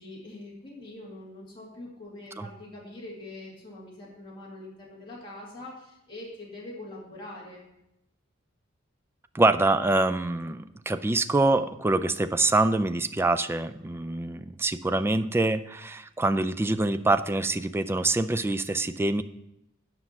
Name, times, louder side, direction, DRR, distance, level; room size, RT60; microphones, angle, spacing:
voice 1, 0.0-7.6, left 1 dB, 25° left, -5 dB, 2.3 m, -43 dB
voice 2, 9.3-19.2, right 2 dB, 10° right, 10 dB, 0.3 m, -25 dB
9.8 x 6.0 x 5.7 m, 0.85 s
head